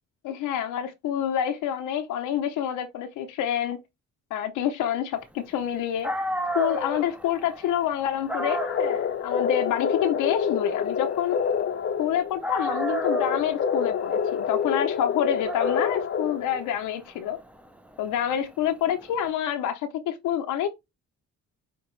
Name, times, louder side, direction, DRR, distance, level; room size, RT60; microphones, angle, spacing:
voice 1, 0.2-3.8 4.3-6.1 6.5-11.4 12.0-17.4 18.0-20.7, left 10 dB, 90° left, 0.7 m, -27 dB
Dog, 5.7-5.8 6.0-12.1 12.4-19.2, right 1 dB, 5° right, 0.6 m, -35 dB
sound 1, 8.3-16.7, left 7 dB, 40° left, 0.6 m, -27 dB
5.2 x 2.9 x 3.1 m
cardioid pair, 90°, 30 cm